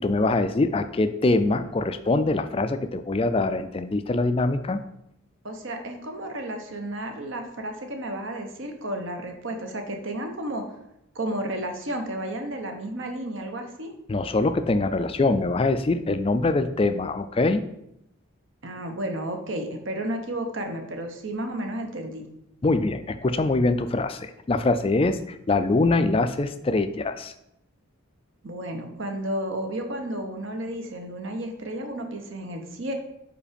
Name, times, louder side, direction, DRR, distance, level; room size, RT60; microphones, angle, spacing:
voice 1, 0.0-4.8 14.1-17.6 22.6-27.3, left 2 dB, 25° left, 10 dB, 0.3 m, -23 dB
voice 2, 5.4-10.6 11.1-13.9 18.6-22.3 28.4-32.9, right 1 dB, 60° right, 4 dB, 0.9 m, -32 dB
4.9 x 4.7 x 5.1 m, 0.80 s
head